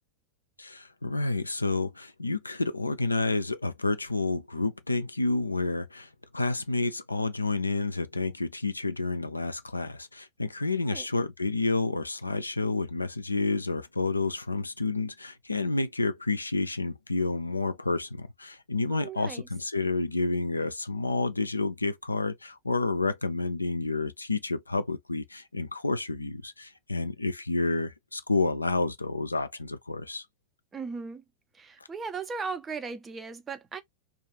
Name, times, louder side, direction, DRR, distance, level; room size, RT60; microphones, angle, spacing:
voice 1, 0.6-30.3, left 3 dB, 80° left, 0.3 m, -30 dB
voice 2, 18.9-19.5 30.7-31.2 31.5-33.8, right 5 dB, 20° right, 0.5 m, -37 dB
2.4 x 2.3 x 2.8 m
figure-of-eight pair, 90°, 0 cm